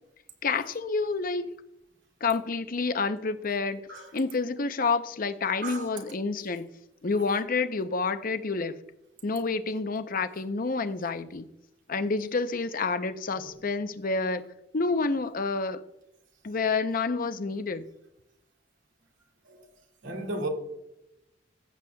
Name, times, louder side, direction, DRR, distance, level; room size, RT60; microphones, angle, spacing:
voice 1, 0.4-1.5 2.2-3.8 4.1-6.7 7.0-8.8 9.2-11.5 11.9-14.5 14.7-15.8 16.4-17.8, left 4 dB, 50° left, 0.7 m, -28 dB
voice 2, 5.6-6.0 13.3-13.5 19.5-19.7 20.0-20.5, right 2 dB, 85° right, 2.1 m, -35 dB
16.0 x 7.9 x 2.3 m
head